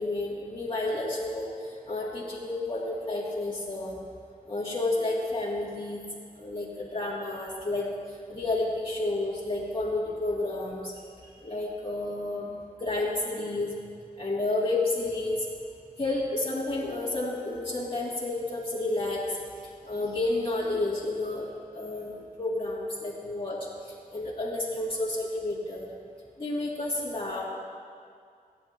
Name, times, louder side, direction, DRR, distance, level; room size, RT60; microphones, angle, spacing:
voice 1, 0.0-4.0 4.5-6.0 6.4-10.9 11.2-13.8 14.2-15.5 16.0-19.4 19.8-23.7 24.1-26.0 26.4-27.5, left 2 dB, 35° left, -7 dB, 2.4 m, -31 dB
26.5 x 9.6 x 2.8 m, 2.2 s
wide cardioid pair, 60°, 15 cm